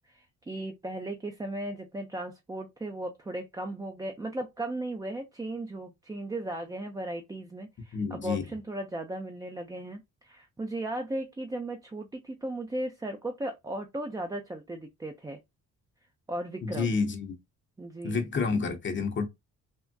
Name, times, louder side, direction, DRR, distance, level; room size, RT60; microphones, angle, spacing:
voice 1, 0.1-15.4 16.3-16.9 17.8-18.2, right 1 dB, 10° right, 0.4 m, -36 dB
voice 2, 7.9-8.4 16.6-17.4 18.0-19.3, left 4 dB, 40° left, 0.7 m, -29 dB
3.5 x 2.1 x 2.6 m
cardioid pair, 90°, 30 cm